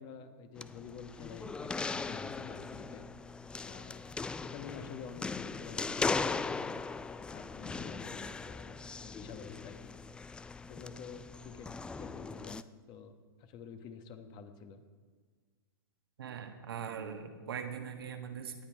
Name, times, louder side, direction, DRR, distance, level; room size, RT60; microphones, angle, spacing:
voice 1, 0.0-3.1 3.6-4.0 4.4-6.7 7.3-9.9 10.7-11.7 12.0-13.1 13.4-14.8, left 6 dB, 35° left, 8 dB, 1.4 m, -48 dB
sound 1, 0.6-12.6, left 4 dB, 5° left, 0.3 m, -39 dB
voice 2, 16.2-18.7, right 7 dB, 75° right, 5 dB, 1.6 m, -41 dB
18.0 x 8.8 x 4.8 m, 1.6 s
hypercardioid pair, 115°, 13 cm